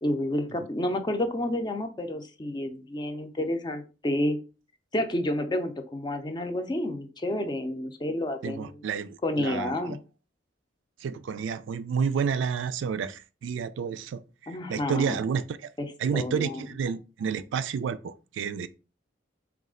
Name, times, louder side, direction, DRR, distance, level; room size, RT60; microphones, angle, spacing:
voice 1, 0.0-4.4 4.9-8.7 9.2-10.0 14.5-15.2 16.1-16.6, left 1 dB, 25° left, 0.5 m, -30 dB
voice 2, 8.4-10.0 11.0-15.7 16.0-18.7, right 6 dB, 90° right, 0.3 m, -30 dB
4.0 x 2.4 x 3.7 m
head